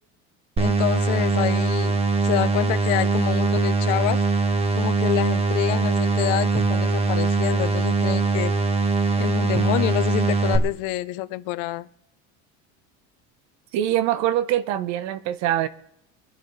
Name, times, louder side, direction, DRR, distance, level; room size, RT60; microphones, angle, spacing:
voice 1, 0.6-4.2 4.8-8.6 9.2-11.9, left 17 dB, 75° left, 0.8 m, -27 dB
sound 1, 0.6-10.6, right 3 dB, 20° right, 1.3 m, -22 dB
voice 2, 13.7-15.7, right 12 dB, 65° right, 1.1 m, -23 dB
24.5 x 11.0 x 3.3 m
cardioid pair, 165°, 31 cm